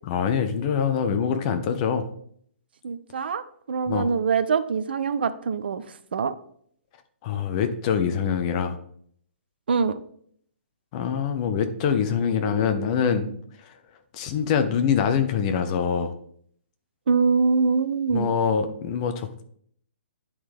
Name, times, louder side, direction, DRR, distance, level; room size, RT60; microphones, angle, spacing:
voice 1, 0.1-2.0 3.9-4.1 7.2-8.8 10.9-13.3 13.7-13.8 14.1-16.1 18.1-19.4, left 7 dB, 30° left, 8 dB, 0.7 m, -24 dB
voice 2, 2.8-6.3 9.7-10.0 17.1-18.3, right 5 dB, 55° right, 12 dB, 0.5 m, -24 dB
11.0 x 3.9 x 3.5 m, 0.64 s
figure-of-eight pair, 125°, 7 cm